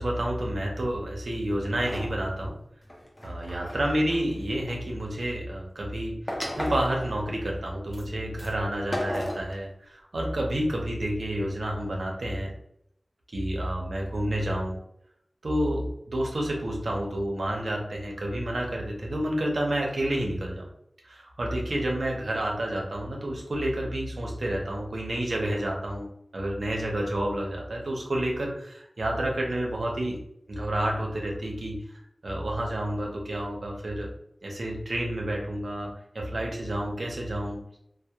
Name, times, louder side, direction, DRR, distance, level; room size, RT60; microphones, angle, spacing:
voice 1, 0.0-2.5 3.2-12.5 13.3-14.8 15.4-20.7 21.0-26.1 26.3-30.2 30.5-31.8 32.2-34.1 34.4-35.9 36.1-37.6, right 1 dB, 85° right, -1 dB, 0.6 m, -29 dB
sound 1, 1.8-2.1 2.8-4.7 6.3-7.4 7.9-8.0 8.4-8.5 8.9-9.5, left 1 dB, 35° left, 0.6 m, -34 dB
2.2 x 2.0 x 2.8 m, 0.74 s
wide cardioid pair, 45°, 0 cm